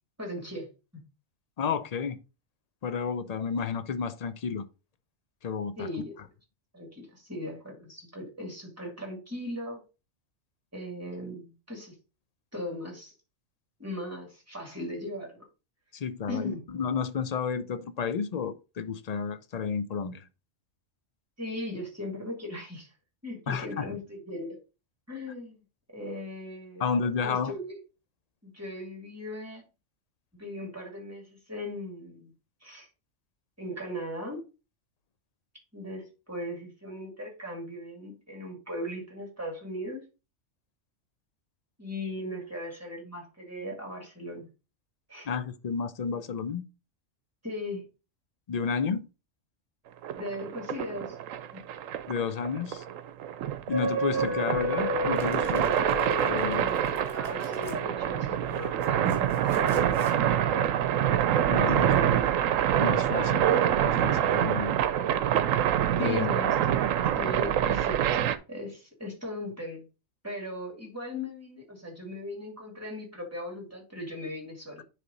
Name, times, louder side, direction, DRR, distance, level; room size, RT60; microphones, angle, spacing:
voice 1, 0.2-0.7 0.9-1.0 5.8-6.2 6.7-9.8 10.7-11.9 12.5-13.1 13.8-15.5 16.3-16.6 21.4-22.9 23.2-24.6 25.1-25.6 25.9-26.9 27.2-27.8 28.4-29.6 30.3-32.3 32.6-32.9 33.6-34.4 35.7-40.0 41.8-44.5 45.1-45.3 47.4-47.9 50.2-51.2 51.5-51.6 56.3-61.0 61.5-62.2 66.0-68.0 68.5-69.9 70.2-74.8, left 1 dB, 10° right, 2.5 m, -38 dB
voice 2, 1.6-2.2 2.8-4.6 5.4-5.9 15.9-20.3 23.5-24.0 26.8-27.5 45.3-46.6 48.5-49.1 52.1-52.8 53.7-55.7 56.3-56.6 61.5-61.9 62.8-63.5 63.7-64.7 66.0-66.3, left 6 dB, 50° left, 0.4 m, -31 dB
sound 1, 50.0-68.4, right 10 dB, 90° right, 1.0 m, -26 dB
sound 2, 53.7-59.4 59.9-60.0, equal, 45° right, 1.4 m, -34 dB
Domestic sounds home sounds, 55.1-57.8 58.5-60.2, equal, 15° left, 3.5 m, -51 dB
9.6 x 3.4 x 3.9 m
omnidirectional pair, 1.3 m